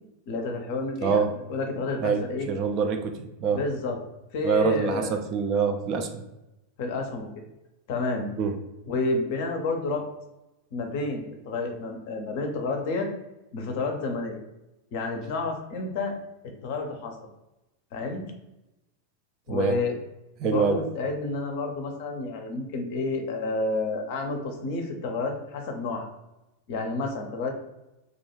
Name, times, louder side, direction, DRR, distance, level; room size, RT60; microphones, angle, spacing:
voice 1, 0.3-1.2 1.5-2.5 3.5-4.0 4.3-5.2 6.8-7.3 7.9-8.3 8.8-10.0 10.7-13.1 13.5-14.4 14.9-16.1 16.4-17.3 17.9-18.2 19.5-19.9 20.4-26.1 26.7-27.5, left 3 dB, 50° left, 3 dB, 0.5 m, -30 dB
voice 2, 1.0-1.3 2.0-3.6 4.4-6.2 8.4-8.6 19.5-19.8 20.4-20.8, right 6 dB, 40° right, 6 dB, 0.3 m, -25 dB
2.3 x 2.2 x 3.0 m, 0.96 s
figure-of-eight pair, 90°, 0 cm